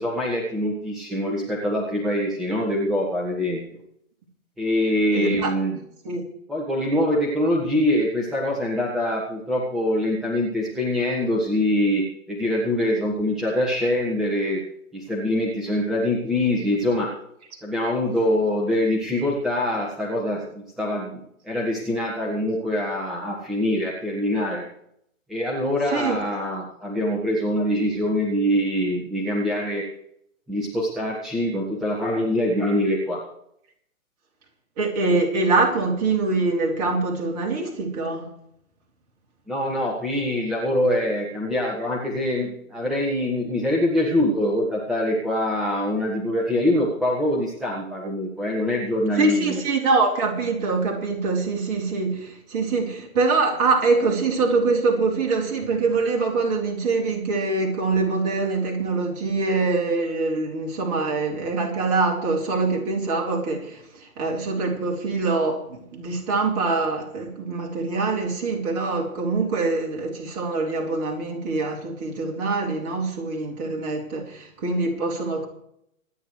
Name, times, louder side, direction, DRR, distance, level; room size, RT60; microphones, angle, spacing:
voice 1, 0.0-3.6 4.6-5.8 6.5-14.6 14.9-17.1 17.6-21.2 21.4-24.6 25.3-29.8 30.5-33.2 39.5-49.6, left 1 dB, ahead, 1.6 m, -24 dB
voice 2, 5.1-5.5 6.0-6.2 25.8-26.2 34.8-38.3 49.2-75.5, right 3 dB, 30° right, 3.2 m, -24 dB
26.0 x 9.8 x 3.3 m
figure-of-eight pair, 125°, 42 cm